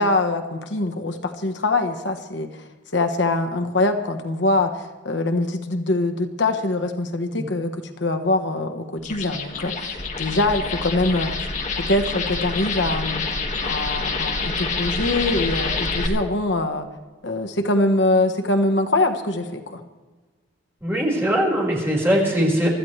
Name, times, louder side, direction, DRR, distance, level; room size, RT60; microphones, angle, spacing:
voice 1, 0.0-2.6 2.9-11.3 11.8-13.2 13.6-16.9 17.2-19.8, left 2 dB, 70° left, 6 dB, 1.3 m, -23 dB
sound 1, 9.0-16.1, left 3 dB, 40° left, 1.9 m, -27 dB
voice 2, 20.8-22.7, equal, 15° right, -4 dB, 5.0 m, -21 dB
25.0 x 14.0 x 3.3 m, 1.3 s
head